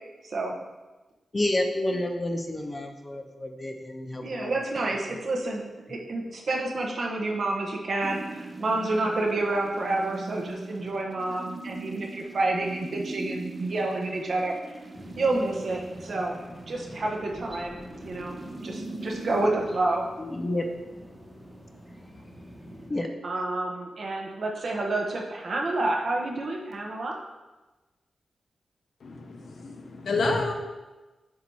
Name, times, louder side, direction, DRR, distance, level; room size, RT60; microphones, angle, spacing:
voice 1, 0.2-0.6 4.2-5.6 5.9-14.5 15.2-16.4 16.7-20.1 23.2-27.2, right 2 dB, 50° right, 0 dB, 0.9 m, -29 dB
voice 2, 1.3-4.6 20.2-20.6 22.9-23.1, left 1 dB, 25° left, 4 dB, 0.6 m, -29 dB
sound 1, 8.0-19.5, right 2 dB, 25° right, 0.6 m, -41 dB
sound 2, 14.9-22.9, equal, 5° left, 1.2 m, -45 dB
voice 3, 29.0-30.5, left 3 dB, 65° left, 3 dB, 0.8 m, -29 dB
8.2 x 2.8 x 4.6 m, 1.2 s
wide cardioid pair, 130°, 0 cm